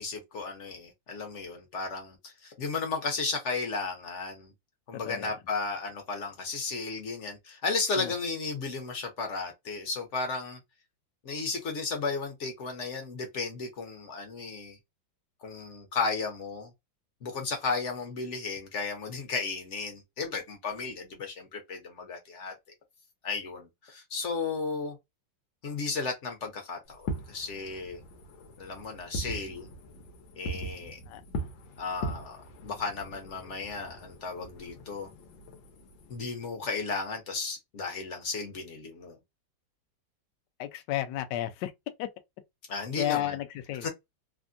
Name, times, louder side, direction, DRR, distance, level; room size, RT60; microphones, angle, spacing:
voice 1, 0.0-4.5 4.9-10.6 11.2-14.8 15.4-16.7 17.2-22.5 23.2-25.0 25.6-28.0 28.6-29.7 30.4-31.0 31.8-35.1 36.1-39.2 42.7-43.4 43.8-43.9, left 4 dB, 55° left, 0.8 m, -34 dB
Fireworks, 26.9-36.2, equal, 90° left, 1.5 m, -40 dB
voice 2, 40.6-41.7 42.0-42.1 43.0-43.9, left 13 dB, 75° left, 1.1 m, -32 dB
3.4 x 2.1 x 2.5 m
omnidirectional pair, 2.0 m